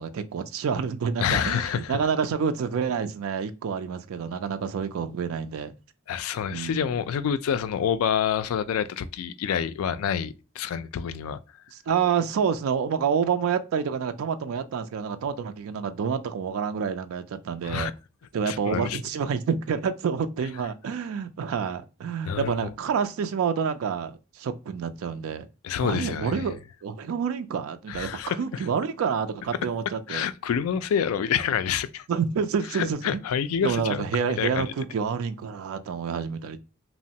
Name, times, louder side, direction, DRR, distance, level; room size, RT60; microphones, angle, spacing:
voice 1, 0.0-5.7 6.5-6.9 11.7-17.9 18.3-25.5 25.8-30.3 32.1-33.0 33.6-36.6, right 6 dB, 75° right, 0.3 m, -28 dB
voice 2, 1.2-2.0 6.1-11.4 17.6-17.9 18.5-19.0 22.3-22.5 25.6-26.5 27.9-28.6 30.1-32.1 32.7-34.0 34.4-34.7, left 8 dB, 85° left, 0.3 m, -27 dB
2.9 x 2.1 x 2.6 m
head